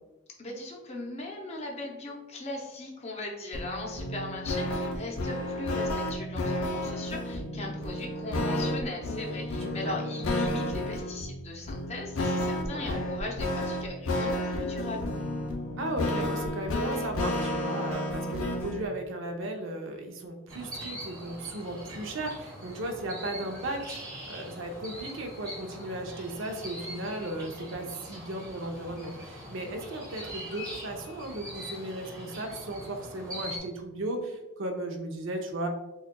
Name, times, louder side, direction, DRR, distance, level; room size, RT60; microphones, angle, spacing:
voice 1, 0.4-15.1, left 2 dB, 30° left, -1 dB, 0.6 m, -39 dB
sound 1, 3.5-18.8, left 1 dB, 90° left, 0.6 m, -31 dB
voice 2, 9.6-10.0 12.6-13.0 15.8-23.8 24.3-35.7, right 1 dB, 65° right, 4 dB, 0.6 m, -36 dB
sound 2, 20.5-33.6, equal, 20° right, 1.4 m, -42 dB
6.3 x 2.3 x 2.2 m, 1.0 s
head